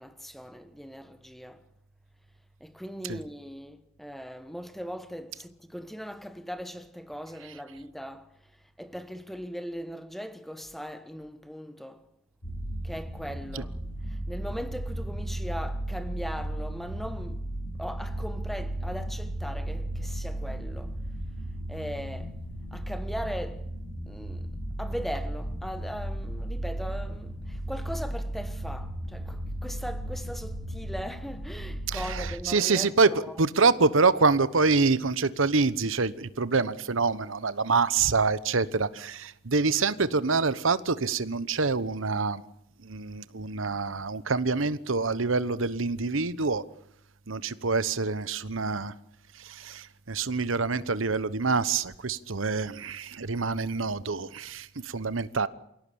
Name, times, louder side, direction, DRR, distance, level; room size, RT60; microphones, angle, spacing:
voice 1, 0.0-1.7 2.6-12.1 12.8-17.4 17.8-21.0 21.7-22.4 22.7-23.7 24.1-33.4, equal, ahead, 1.3 m, -39 dB
sound 1, 12.4-32.3, right 1 dB, 75° left, 3.8 m, -35 dB
voice 2, 31.9-42.4 42.8-46.6 47.3-48.9 49.4-55.5, right 4 dB, 80° right, 1.1 m, -26 dB
27.5 x 18.0 x 8.7 m
head